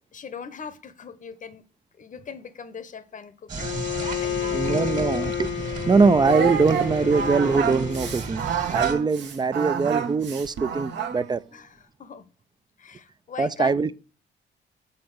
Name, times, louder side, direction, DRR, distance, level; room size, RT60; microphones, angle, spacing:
voice 1, 0.0-1.6 2.0-3.5 4.2-5.0 11.5-12.3 12.8-13.9, left 6 dB, 40° left, 0.8 m, -40 dB
sound 1, 3.5-8.9, right 3 dB, 40° right, 1.7 m, -34 dB
Bowed string instrument, 3.6-8.3, left 11 dB, 75° left, 0.7 m, -31 dB
voice 2, 4.5-5.5 5.9-11.4 13.4-13.9, right 4 dB, 20° right, 0.4 m, -22 dB
Singing, 6.2-11.3, right 7 dB, 65° right, 0.9 m, -28 dB
6.6 x 4.2 x 6.1 m
cardioid pair, 90°, 20 cm